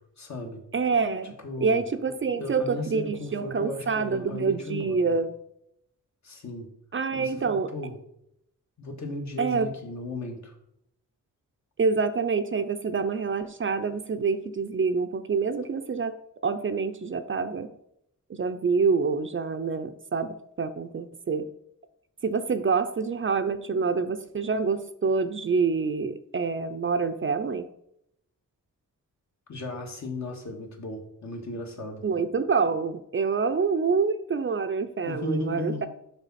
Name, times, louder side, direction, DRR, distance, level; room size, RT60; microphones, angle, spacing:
voice 1, 0.2-0.6 1.2-1.9 2.3-5.2 6.2-6.7 7.1-8.0 8.8-10.5 29.5-32.0 35.0-35.9, left 1 dB, 60° left, 2 dB, 1.6 m, -35 dB
voice 2, 0.7-1.3 1.6-5.3 6.9-7.7 9.4-9.7 11.8-16.2 16.4-17.7 18.3-21.5 22.2-27.7 32.0-35.9, right 5 dB, 40° right, 10 dB, 0.5 m, -26 dB
6.9 x 5.7 x 4.2 m, 0.76 s
wide cardioid pair, 125°, 33 cm